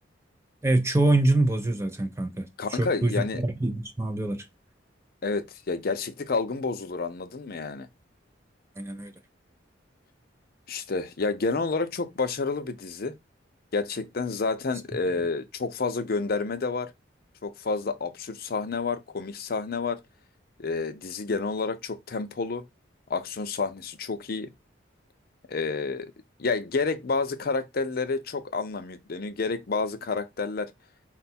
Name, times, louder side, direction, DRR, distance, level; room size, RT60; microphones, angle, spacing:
voice 1, 0.6-4.4 8.8-9.1, right 2 dB, 15° right, 0.4 m, -25 dB
voice 2, 2.6-3.4 5.2-7.9 10.7-13.1 13.7-16.9 17.4-20.0 20.6-22.6 23.1-24.5 25.5-26.1 26.4-30.7, left 4 dB, 50° left, 0.5 m, -29 dB
4.3 x 2.3 x 4.1 m
head